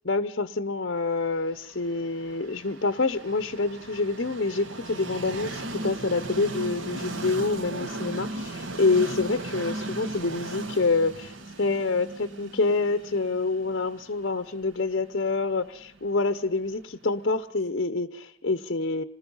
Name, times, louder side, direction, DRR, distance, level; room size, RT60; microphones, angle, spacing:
voice 1, 0.0-19.0, left 3 dB, 55° left, 10 dB, 0.8 m, -27 dB
Train, 1.4-17.3, right 2 dB, 70° right, 1.3 m, -37 dB
26.5 x 20.5 x 5.5 m, 0.62 s
head